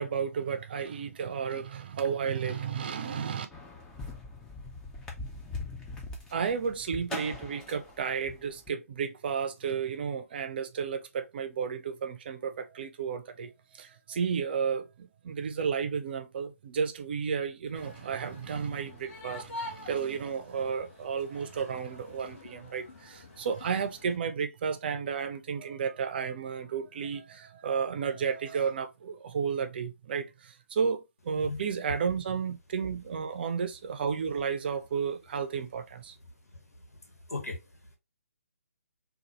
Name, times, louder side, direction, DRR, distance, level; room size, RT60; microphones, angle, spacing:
voice 1, 0.0-3.5 6.3-36.1, right 6 dB, 40° right, 0.5 m, -32 dB
sound 1, 3.5-8.7, left 3 dB, 5° left, 0.6 m, -41 dB
sound 2, 17.7-24.2, left 2 dB, 40° left, 1.4 m, -46 dB
voice 2, 36.5-37.6, left 3 dB, 80° left, 1.4 m, -39 dB
3.9 x 2.3 x 2.9 m
figure-of-eight pair, 140°, 8 cm